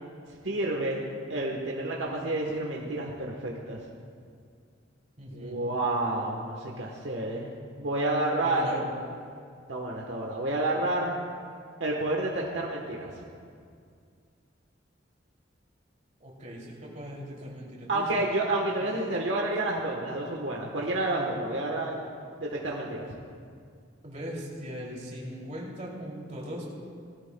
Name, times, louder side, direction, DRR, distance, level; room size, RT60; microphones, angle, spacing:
voice 1, 0.4-3.8 5.3-7.5 7.8-8.8 9.7-11.1 11.8-13.1 17.9-22.0 22.4-23.1, right 2 dB, 75° right, -1 dB, 1.2 m, -29 dB
voice 2, 5.2-5.6 8.4-8.8 16.2-18.2 18.8-18.9 24.0-26.7, equal, 40° right, -4 dB, 2.8 m, -39 dB
19.0 x 14.0 x 2.3 m, 2.2 s
head